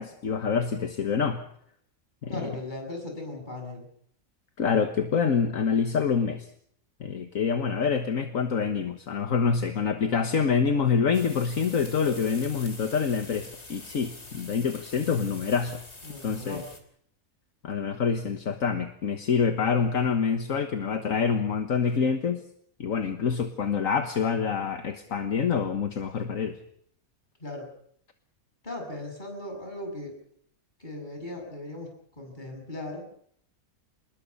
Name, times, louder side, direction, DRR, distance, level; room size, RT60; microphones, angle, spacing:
voice 1, 0.0-1.4 2.2-2.3 4.6-6.5 7.0-15.8 16.2-16.6 17.6-22.4 22.8-26.6, left 6 dB, 65° left, 7 dB, 1.8 m, -26 dB
voice 2, 2.3-3.9 16.0-16.7 27.4-27.7 28.6-30.2 30.8-31.9 32.2-33.1, left 1 dB, 30° left, 2 dB, 7.3 m, -38 dB
sound 1, 11.1-16.8, left 2 dB, 45° left, 3.5 m, -45 dB
27.0 x 21.0 x 5.6 m, 0.64 s
omnidirectional pair, 1.5 m